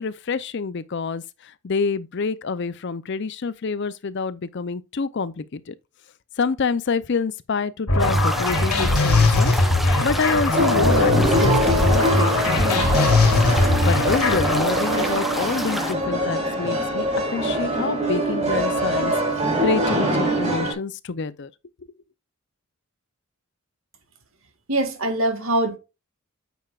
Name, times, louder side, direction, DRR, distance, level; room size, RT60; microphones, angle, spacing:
voice 1, 0.0-5.7 6.4-9.5 10.0-13.1 13.8-17.1 17.3-19.1 19.6-21.5, left 4 dB, 50° left, 0.5 m, -27 dB
sound 1, 7.9-14.6, left 2 dB, 85° left, 3.5 m, -20 dB
sound 2, 8.0-15.9, equal, ahead, 0.6 m, -30 dB
sound 3, 10.5-20.7, equal, 30° right, 3.4 m, -24 dB
voice 2, 24.7-25.8, right 1 dB, 65° right, 2.2 m, -23 dB
9.1 x 6.7 x 2.4 m
head